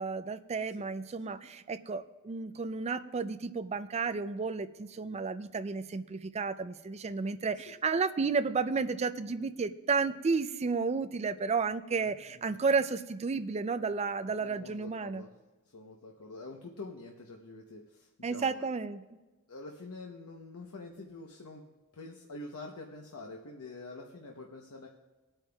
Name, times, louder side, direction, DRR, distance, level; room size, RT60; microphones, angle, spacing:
voice 1, 0.0-15.2 18.2-19.0, right 4 dB, 30° right, 11 dB, 0.4 m, -32 dB
voice 2, 14.4-15.3 15.7-18.7 19.5-21.6 21.9-24.9, left 2 dB, 90° left, 1 dB, 0.9 m, -46 dB
21.0 x 8.9 x 2.3 m, 1.2 s
head